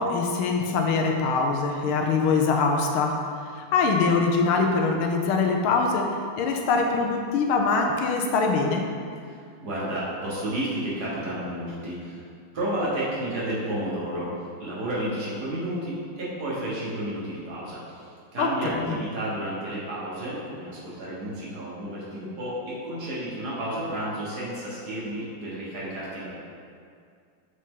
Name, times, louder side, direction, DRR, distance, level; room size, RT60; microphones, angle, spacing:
voice 1, 0.0-3.1 3.7-6.1 6.4-8.8 18.4-18.5 18.8-18.9, left 4 dB, 80° left, 2 dB, 1.5 m, -23 dB
voice 2, 9.2-12.3 12.5-26.4, right 1 dB, 50° right, -8 dB, 1.7 m, -31 dB
6.3 x 4.1 x 3.7 m, 2.2 s
omnidirectional pair, 2.4 m